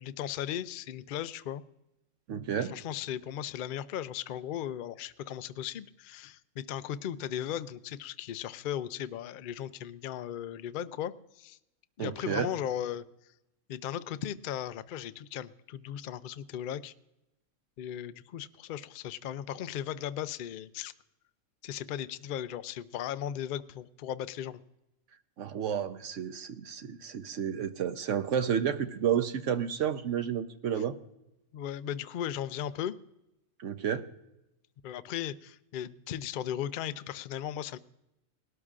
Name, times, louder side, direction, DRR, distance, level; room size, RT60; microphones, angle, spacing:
voice 1, 0.0-1.6 2.6-11.6 12.0-13.1 13.7-16.9 17.8-20.9 21.6-24.6 30.8-30.9 31.5-33.0 34.8-37.8, left 10 dB, 80° left, 13 dB, 0.4 m, -37 dB
voice 2, 2.3-2.7 12.0-12.5 25.4-31.0 33.6-34.1, right 8 dB, 65° right, 9 dB, 1.0 m, -31 dB
19.5 x 12.5 x 2.5 m, 0.89 s
omnidirectional pair, 1.5 m